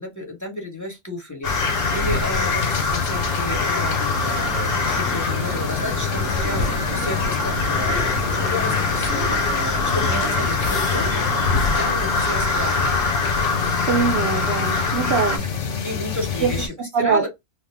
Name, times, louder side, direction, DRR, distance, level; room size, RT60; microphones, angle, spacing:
voice 1, 0.0-4.1 4.9-11.3 11.7-13.1 15.8-16.7 17.0-17.3, left 1 dB, 15° left, 1.0 m, -32 dB
sound 1, 1.4-16.7, left 6 dB, 85° left, 1.1 m, -27 dB
sound 2, 1.4-15.4, left 3 dB, 60° left, 0.9 m, -24 dB
sound 3, 4.2-11.5, right 2 dB, 20° right, 0.3 m, -33 dB
voice 2, 13.9-15.5 16.4-16.5 16.9-17.3, right 5 dB, 65° right, 0.8 m, -22 dB
3.0 x 2.0 x 3.3 m
omnidirectional pair, 1.2 m